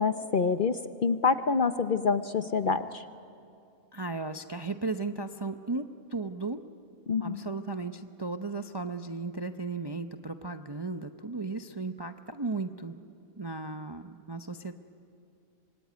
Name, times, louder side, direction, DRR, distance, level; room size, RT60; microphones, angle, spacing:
voice 1, 0.0-3.0 7.1-7.4, left 5 dB, 45° left, 10 dB, 0.8 m, -27 dB
voice 2, 3.9-5.9 6.1-6.6 7.2-12.9 13.4-14.7, right 3 dB, 25° right, 7 dB, 0.5 m, -35 dB
26.0 x 24.5 x 9.3 m, 2.5 s
omnidirectional pair, 1.4 m